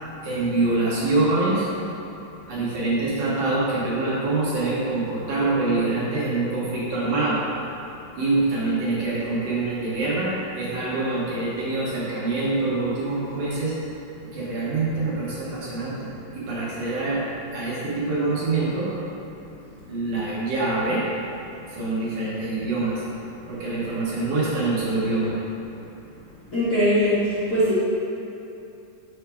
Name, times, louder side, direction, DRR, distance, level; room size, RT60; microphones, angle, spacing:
voice 1, 0.2-1.7 2.5-7.4 8.2-13.7 14.2-17.2 17.5-18.9 19.9-21.0 21.7-23.0 23.5-25.4, right 2 dB, 65° right, -8 dB, 2.3 m, -25 dB
voice 2, 26.5-27.1 27.5-27.8, equal, 65° left, -13 dB, 0.9 m, -20 dB
6.4 x 6.0 x 3.4 m, 2.9 s
omnidirectional pair, 4.3 m